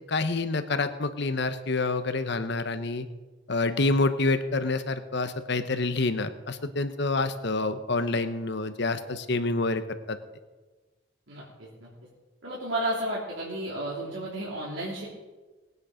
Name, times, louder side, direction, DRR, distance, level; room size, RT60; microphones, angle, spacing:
voice 1, 0.1-3.0 3.5-9.8 10.1-10.2, left 3 dB, 65° left, 10 dB, 1.0 m, -27 dB
voice 2, 11.3-11.9 12.4-15.1, right 1 dB, 85° right, -6 dB, 3.3 m, -32 dB
20.0 x 9.4 x 5.1 m, 1.3 s
head